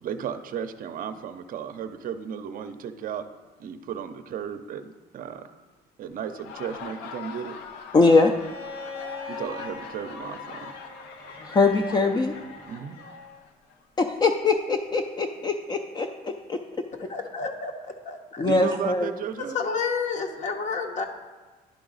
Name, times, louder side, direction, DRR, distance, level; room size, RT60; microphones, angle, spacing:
voice 1, 0.0-3.3 3.6-5.5 6.0-7.6 9.3-10.7 12.7-13.0 18.4-19.6, right 8 dB, 55° right, 9 dB, 0.5 m, -34 dB
Laughter, 6.2-13.8, left 6 dB, 90° left, 0.7 m, -42 dB
voice 2, 7.9-8.3 11.4-12.3 14.0-16.6 18.4-19.1, left 3 dB, 25° left, 5 dB, 0.4 m, -22 dB
Bowed string instrument, 8.3-13.4 14.8-14.9, left 3 dB, 75° left, 1.7 m, -42 dB
voice 3, 17.1-17.7 18.0-18.4 19.5-21.0, left 5 dB, 45° left, 5 dB, 0.9 m, -29 dB
11.0 x 3.9 x 3.9 m, 1.3 s
cardioid pair, 110°, 17 cm